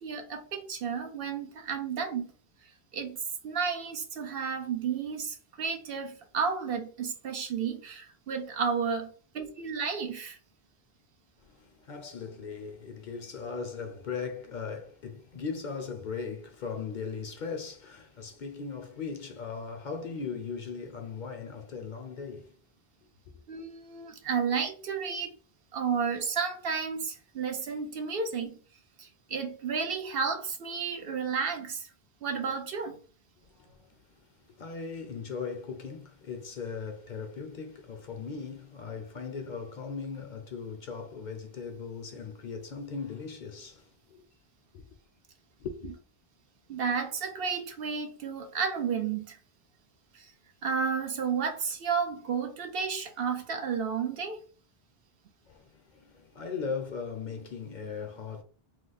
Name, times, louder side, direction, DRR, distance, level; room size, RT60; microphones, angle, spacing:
voice 1, 0.0-2.3 2.9-3.2 3.4-10.4 23.5-25.3 25.7-28.6 29.0-31.9 32.2-33.0 45.8-45.9 46.7-49.4 50.1-50.3 50.6-54.4, right 6 dB, 65° right, 0.8 m, -32 dB
voice 2, 11.4-22.5 33.5-33.9 34.5-44.2 44.7-44.9 45.6-45.9 55.5-58.4, left 5 dB, 55° left, 0.6 m, -38 dB
2.9 x 2.0 x 3.9 m
omnidirectional pair, 1.0 m